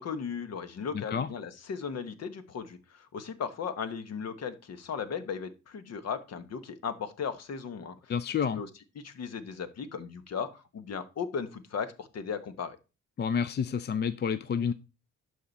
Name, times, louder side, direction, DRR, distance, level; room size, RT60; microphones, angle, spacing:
voice 1, 0.0-8.1 8.5-8.7 8.9-12.8, left 6 dB, 55° left, 1.2 m, -36 dB
voice 2, 0.9-1.3 8.1-8.6 13.2-14.7, left 7 dB, 35° left, 0.5 m, -29 dB
11.5 x 5.0 x 4.0 m
cardioid pair, 90°, 30 cm